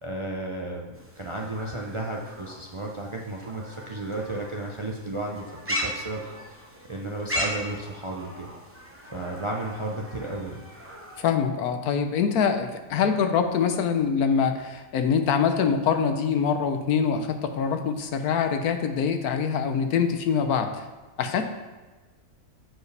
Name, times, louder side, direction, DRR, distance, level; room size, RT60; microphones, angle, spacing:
voice 1, 0.0-6.6 6.9-8.5 9.1-10.6, right 2 dB, 55° right, -1 dB, 0.3 m, -33 dB
sound 1, 0.9-11.2, equal, 10° right, 0.7 m, -37 dB
voice 2, 11.2-20.9 21.2-21.5, left 6 dB, 75° left, 7 dB, 1.2 m, -24 dB
13.5 x 4.8 x 3.3 m, 1.3 s
omnidirectional pair, 1.6 m